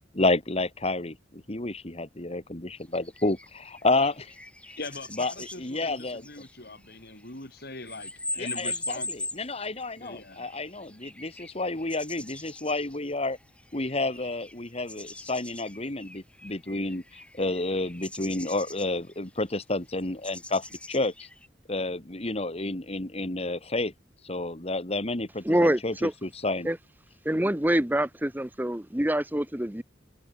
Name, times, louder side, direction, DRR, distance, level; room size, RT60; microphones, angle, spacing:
voice 1, 0.1-4.3 5.1-5.3 5.6-6.3 8.4-13.4 13.7-21.3 21.7-23.9 24.2-26.7, left 2 dB, 35° left, 2.2 m, -30 dB
sound 1, 2.8-21.5, left 2 dB, 5° left, 5.2 m, -42 dB
voice 2, 4.8-9.2 10.0-10.5, left 3 dB, 60° left, 6.8 m, -41 dB
voice 3, 25.4-26.1 26.6-26.8 27.2-29.8, right 1 dB, 10° right, 1.2 m, -25 dB
head